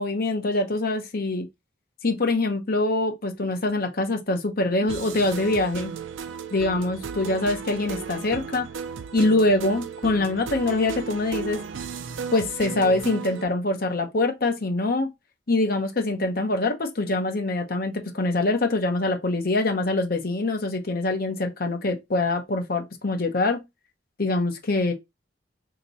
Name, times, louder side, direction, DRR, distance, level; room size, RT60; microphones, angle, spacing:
voice 1, 0.0-1.5 2.0-5.9 6.5-8.7 9.1-11.6 12.3-15.1 15.5-23.6 24.2-24.9, left 2 dB, 50° left, 0.8 m, -24 dB
sound 1, 4.8-13.4, right 6 dB, 75° right, 0.4 m, -35 dB
2.9 x 2.9 x 4.0 m
head